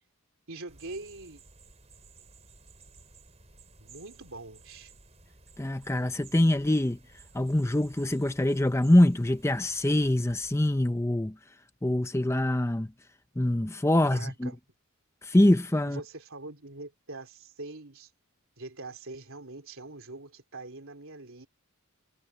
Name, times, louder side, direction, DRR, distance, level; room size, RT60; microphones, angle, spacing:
voice 1, 0.5-1.4 3.8-4.9 14.1-14.6 15.9-18.1 18.6-21.5, right 2 dB, 65° right, 3.5 m, -43 dB
sound 1, 0.7-10.7, right 3 dB, 30° right, 6.3 m, -55 dB
voice 2, 5.6-7.0 7.3-11.3 11.8-12.9 13.4-14.5 15.2-16.0, left 1 dB, 10° left, 0.6 m, -24 dB
head